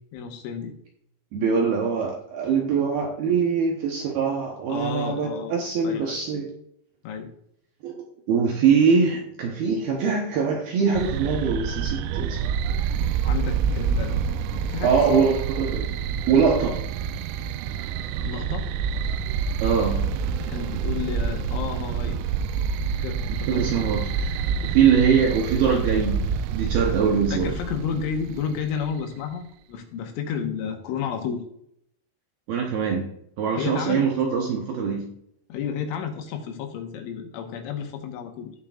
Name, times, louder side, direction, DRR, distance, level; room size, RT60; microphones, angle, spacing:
voice 1, 0.1-0.7 4.7-5.5 5.8-6.2 7.0-7.3 13.2-14.2 14.5-15.3 18.2-18.7 20.4-22.2 23.0-23.7 24.4-24.5 27.3-31.5 33.5-34.1 35.5-38.5, left 7 dB, 80° left, 4 dB, 3.6 m, -31 dB
voice 2, 1.3-6.5 7.8-12.4 14.8-15.9 16.3-16.8 19.6-20.1 23.5-26.2 26.5-27.5 32.5-33.1 33.4-35.1, right 6 dB, 75° right, 0 dB, 2.3 m, -23 dB
sound 1, 10.9-28.9, right 6 dB, 90° right, 3.1 m, -27 dB
17.5 x 5.9 x 2.4 m, 0.71 s
omnidirectional pair, 5.6 m